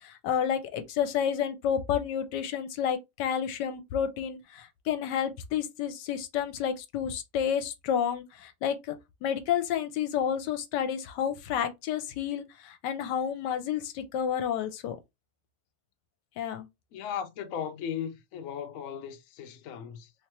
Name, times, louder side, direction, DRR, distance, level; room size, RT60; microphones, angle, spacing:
voice 1, 0.0-9.0 9.2-15.0 16.4-16.7, left 8 dB, 80° left, 1.2 m, -30 dB
voice 2, 16.9-20.1, left 8 dB, 65° left, 0.8 m, -37 dB
3.3 x 3.0 x 2.9 m
omnidirectional pair, 1.9 m